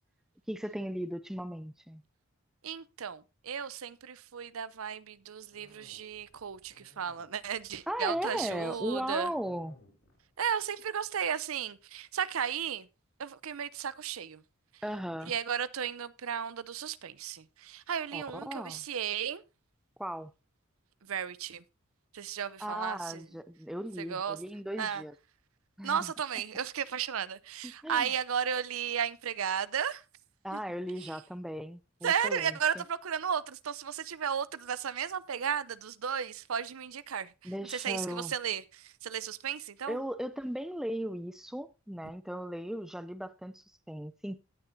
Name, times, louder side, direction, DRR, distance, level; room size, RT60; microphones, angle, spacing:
voice 1, 0.5-2.0 7.9-9.8 14.8-15.3 18.1-18.8 20.0-20.3 22.6-25.1 25.8-26.1 27.6-28.1 30.4-32.8 37.4-38.3 39.9-44.4, equal, ahead, 0.4 m, -37 dB
voice 2, 2.6-9.3 10.4-12.9 13.2-14.4 15.3-19.4 21.0-21.6 22.1-23.2 24.0-24.4 24.8-25.0 25.8-30.0 30.5-30.6 31.0-31.1 32.0-40.0, right 8 dB, 75° right, 0.6 m, -34 dB
sound 1, 5.5-10.5, left 1 dB, 55° left, 3.7 m, -61 dB
17.0 x 6.8 x 2.7 m
head